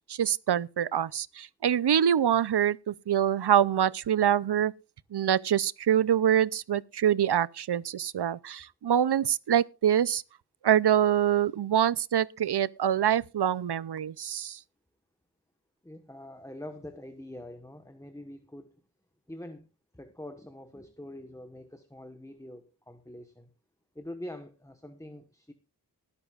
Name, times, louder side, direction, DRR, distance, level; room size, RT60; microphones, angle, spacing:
voice 1, 0.1-4.7 5.1-10.2 10.6-14.6, right 10 dB, 85° right, 0.5 m, -25 dB
voice 2, 15.8-18.8 19.3-19.7 19.9-23.5 23.9-25.5, left 1 dB, 10° left, 1.2 m, -44 dB
20.0 x 11.5 x 2.4 m
wide cardioid pair, 60°, 38 cm